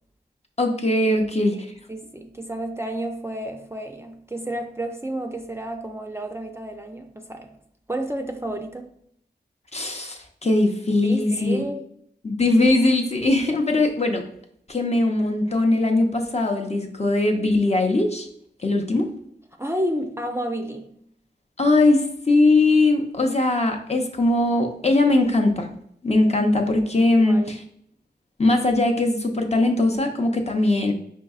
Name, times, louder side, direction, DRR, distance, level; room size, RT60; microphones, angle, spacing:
voice 1, 0.6-1.7 9.7-11.6 12.2-14.2 14.7-18.3 18.6-19.1 21.6-25.7 26.0-27.6 28.4-30.9, left 2 dB, 40° left, 3 dB, 0.6 m, -20 dB
voice 2, 1.5-7.6 7.9-8.9 10.9-11.9 19.6-20.9 27.0-27.5, right 1 dB, 15° right, 3 dB, 0.4 m, -31 dB
5.2 x 2.7 x 2.4 m, 0.69 s
wide cardioid pair, 60°, 18 cm